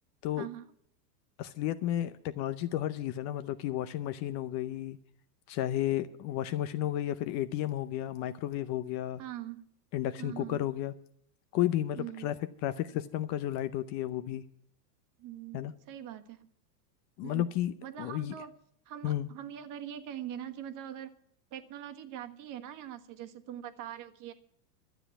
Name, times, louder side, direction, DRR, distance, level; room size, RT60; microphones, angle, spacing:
voice 1, 0.3-0.7 9.2-9.7 10.2-10.7 11.9-12.3 15.2-16.5 17.2-17.5 17.8-18.5 18.8-21.1 21.5-24.3, right 11 dB, 40° right, 7 dB, 1.4 m, -42 dB
voice 2, 1.4-5.0 5.5-9.2 9.9-10.9 11.5-12.3 12.6-14.4 15.5-15.7 17.2-18.3 19.0-19.3, left 12 dB, 35° left, 12 dB, 0.6 m, -32 dB
12.0 x 8.0 x 9.9 m, 0.66 s
supercardioid pair, 130°, 50 cm